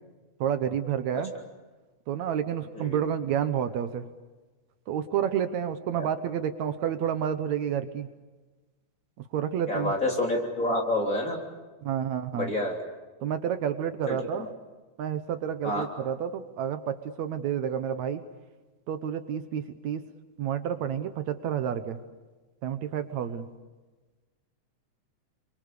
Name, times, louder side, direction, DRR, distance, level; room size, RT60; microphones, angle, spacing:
voice 1, 0.4-1.3 2.1-4.1 4.9-8.1 9.3-9.9 11.8-12.5 13.2-14.5 15.0-18.2 18.9-20.1 20.4-22.0 22.6-23.5, right 9 dB, 70° right, 10 dB, 2.3 m, -30 dB
voice 2, 9.7-11.4 12.3-12.8 14.1-14.5 15.6-15.9, left 1 dB, 25° left, 1 dB, 3.8 m, -28 dB
29.0 x 24.5 x 6.8 m, 1.2 s
omnidirectional pair, 3.5 m